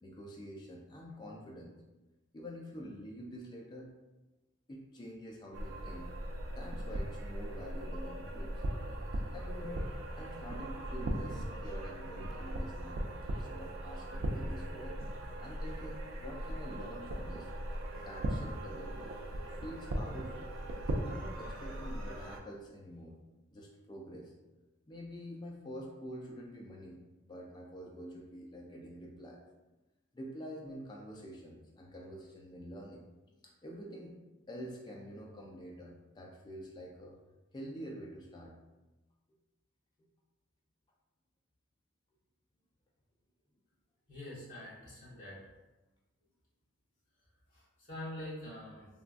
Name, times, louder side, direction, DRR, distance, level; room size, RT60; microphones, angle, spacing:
voice 1, 0.0-1.7 2.3-3.9 4.7-8.9 9.3-15.0 15.4-17.5 18.0-19.2 19.5-20.5 21.0-23.1 23.5-24.3 24.9-27.0 27.2-29.4 30.1-33.0 33.4-34.2 34.5-37.2 37.5-38.6, equal, 20° left, -1 dB, 0.3 m, -47 dB
sound 1, 5.5-22.4, right 1 dB, 80° right, 0.4 m, -39 dB
voice 2, 44.1-45.4 47.9-48.9, left 1 dB, 40° left, -9 dB, 1.3 m, -44 dB
3.4 x 2.2 x 2.4 m, 1.1 s
head